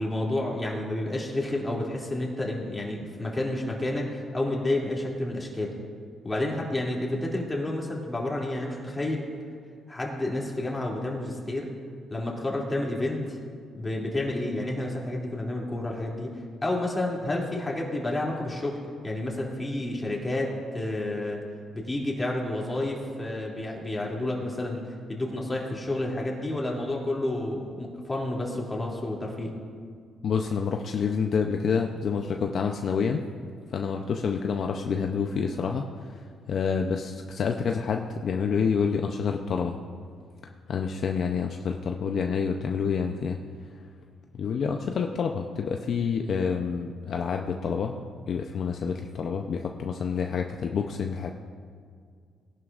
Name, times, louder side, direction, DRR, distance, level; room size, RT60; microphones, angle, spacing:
voice 1, 0.0-5.7 6.2-9.4 9.9-11.7 12.1-13.4 13.7-16.3 16.6-21.4 21.7-24.8 25.1-29.5, left 1 dB, 20° left, -3 dB, 2.6 m, -30 dB
voice 2, 30.2-33.2 33.7-39.8 40.4-43.4 44.3-48.0 48.3-51.3, left 6 dB, 60° left, 3 dB, 0.6 m, -28 dB
18.5 x 11.0 x 2.5 m, 2.1 s
cardioid pair, 90°, 0 cm